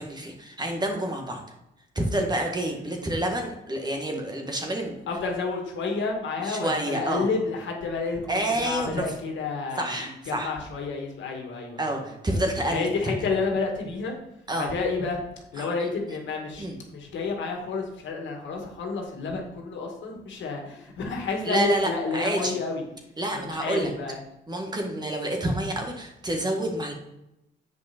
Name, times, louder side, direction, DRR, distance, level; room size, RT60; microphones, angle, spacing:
voice 1, 0.0-1.4 1.9-5.0 6.4-7.3 8.3-9.1 9.8-10.5 11.8-12.9 14.5-14.7 15.6-15.7 16.6-16.7 21.4-22.6 23.2-23.9 24.5-26.9, right 1 dB, 20° right, 2 dB, 1.8 m, -28 dB
voice 2, 5.1-12.1 12.7-14.1 14.6-15.2 15.5-22.8 23.3-24.2, left 4 dB, 70° left, 1 dB, 2.0 m, -30 dB
7.8 x 5.4 x 4.4 m, 0.87 s
cardioid pair, 90°, 20 cm